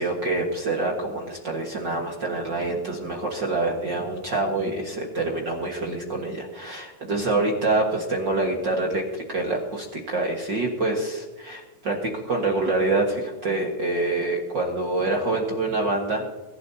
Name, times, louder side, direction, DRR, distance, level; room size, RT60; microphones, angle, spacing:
voice 1, 0.0-16.2, right 2 dB, 45° right, 0 dB, 1.5 m, -26 dB
25.0 x 11.5 x 2.9 m, 1.2 s
omnidirectional pair, 4.4 m